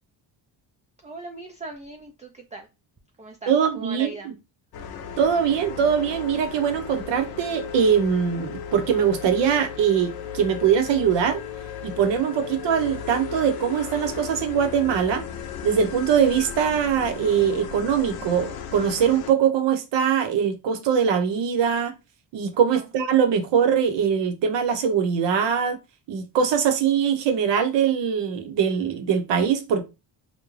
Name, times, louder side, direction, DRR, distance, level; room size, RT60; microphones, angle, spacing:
voice 1, 1.0-2.7 3.2-4.3 22.7-22.9, right 2 dB, 15° right, 0.3 m, -39 dB
voice 2, 3.5-4.3 5.2-11.4 11.8-15.3 15.6-22.0 22.3-25.8 26.1-29.8, right 7 dB, 65° right, 0.7 m, -22 dB
sound 1, 4.7-19.3, left 7 dB, 55° left, 0.6 m, -36 dB
2.4 x 2.2 x 3.1 m
cardioid pair, 85°, 47 cm